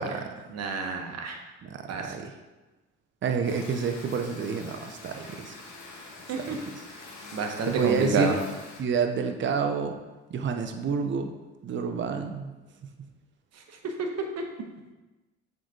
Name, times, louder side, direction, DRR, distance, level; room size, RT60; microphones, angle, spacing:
voice 1, 0.0-0.5 1.6-2.4 3.2-5.6 6.4-6.9 7.6-8.4 8.8-10.0 10.3-11.3 11.6-12.5, right 5 dB, 40° right, 6 dB, 0.7 m, -29 dB
voice 2, 0.5-1.4 1.9-2.0 6.3-6.6 7.3-8.3 14.0-14.1 14.4-14.5, right 4 dB, 55° right, 3 dB, 1.2 m, -28 dB
sound 1, 3.4-8.8, left 3 dB, 65° left, 1.6 m, -45 dB
7.3 x 4.0 x 3.8 m, 1.1 s
supercardioid pair, 70°, 30 cm